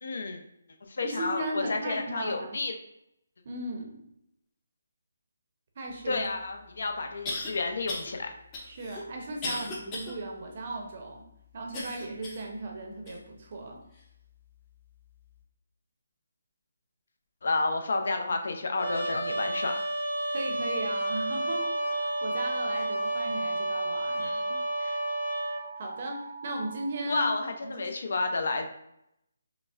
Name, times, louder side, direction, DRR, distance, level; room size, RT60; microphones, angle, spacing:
voice 1, 0.0-0.4 0.9-2.7 6.1-8.3 9.4-9.6 17.4-19.9 24.2-25.0 27.1-28.7, left 3 dB, 60° left, 5 dB, 0.5 m, -31 dB
voice 2, 1.0-2.6 3.4-4.0 5.8-6.2 8.6-11.3 11.5-13.8 20.3-24.3 25.8-27.3 27.6-27.8, right 2 dB, 40° right, 2 dB, 0.6 m, -36 dB
sound 1, 6.2-6.3 7.3-7.5 7.9-8.1 8.5-10.1 10.6-10.7 11.7-12.5 13.1-13.2 13.9-14.0, left 2 dB, 20° left, 0.6 m, -36 dB
Trumpet, 18.8-25.6, right 1 dB, 75° left, 1.1 m, -31 dB
sound 2, 21.6-26.9, right 4 dB, 85° right, 0.4 m, -43 dB
5.0 x 2.1 x 2.4 m, 0.79 s
hypercardioid pair, 170°, 0 cm